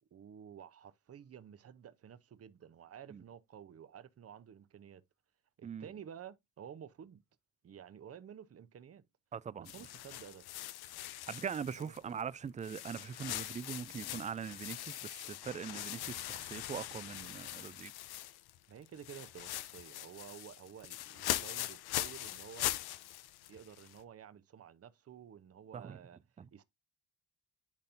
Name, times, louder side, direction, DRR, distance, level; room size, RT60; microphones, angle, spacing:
voice 1, 0.1-5.0 5.6-7.2 7.6-9.0 9.6-10.5 11.8-11.9 18.7-22.9 23.5-26.2 26.5-26.6, right 8 dB, 40° right, 0.8 m, -52 dB
voice 2, 9.3-9.7 11.3-17.9 25.7-26.0 26.4-26.5, right 7 dB, 20° right, 0.3 m, -42 dB
sound 1, 9.6-12.2 12.6-18.6 18.9-24.0, left 14 dB, 75° left, 0.7 m, -41 dB
10.5 x 4.1 x 2.6 m
supercardioid pair, 70°, 38 cm